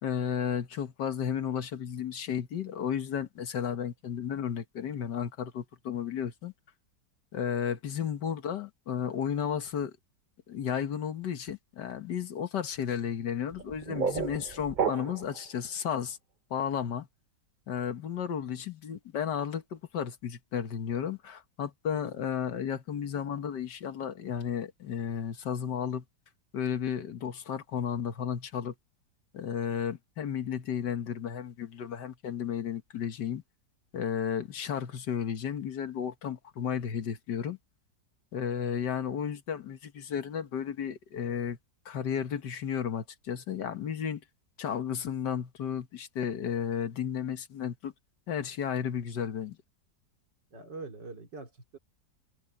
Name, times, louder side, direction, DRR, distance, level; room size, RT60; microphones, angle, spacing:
voice 1, 0.0-6.5 7.3-9.9 10.5-16.2 16.5-17.1 17.7-26.0 26.5-28.7 29.3-33.4 33.9-37.6 38.3-41.6 41.9-44.2 44.6-47.9 48.3-49.6, left 8 dB, 80° left, 1.9 m, -33 dB
sound 1, 13.5-15.4, right 6 dB, 70° right, 0.4 m, -32 dB
voice 2, 18.3-18.6 21.9-22.0 50.5-51.8, right 3 dB, 85° right, 3.8 m, -45 dB
omnidirectional pair, 1.9 m